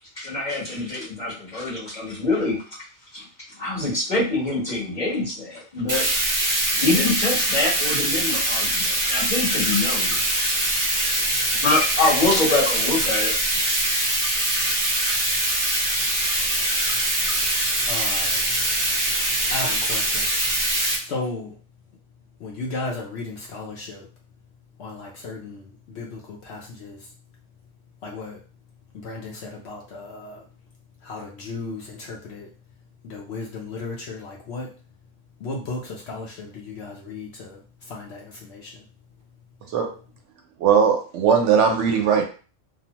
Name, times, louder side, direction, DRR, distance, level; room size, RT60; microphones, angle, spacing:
voice 1, 0.1-2.6 3.1-3.2 3.6-6.0 6.7-10.2 11.5-13.4, left 2 dB, 35° left, -7 dB, 1.3 m, -25 dB
Bathtub (filling or washing), 5.9-21.0, right 1 dB, 25° right, 0.4 m, -23 dB
voice 2, 17.8-18.5 19.5-20.3 20.9-21.6 22.4-24.1 24.8-27.1 28.0-28.4 28.9-30.5 31.0-32.5 33.0-34.7 35.4-38.8, left 3 dB, 65° left, -1 dB, 0.8 m, -35 dB
voice 3, 40.6-42.2, right 6 dB, 70° right, 3 dB, 0.8 m, -18 dB
2.9 x 2.0 x 2.8 m, 0.37 s
omnidirectional pair, 1.3 m